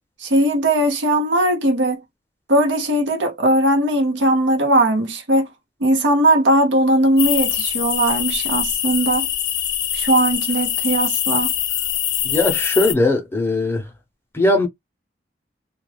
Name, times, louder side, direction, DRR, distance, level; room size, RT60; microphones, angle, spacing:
voice 1, 0.2-2.0 2.5-5.5 5.8-9.3 9.9-11.5, right 1 dB, 85° right, 0.7 m, -18 dB
sound 1, 7.2-12.9, left 10 dB, 60° left, 0.5 m, -23 dB
voice 2, 12.2-13.8 14.3-14.7, left 2 dB, 15° left, 0.6 m, -19 dB
2.2 x 2.2 x 3.2 m
head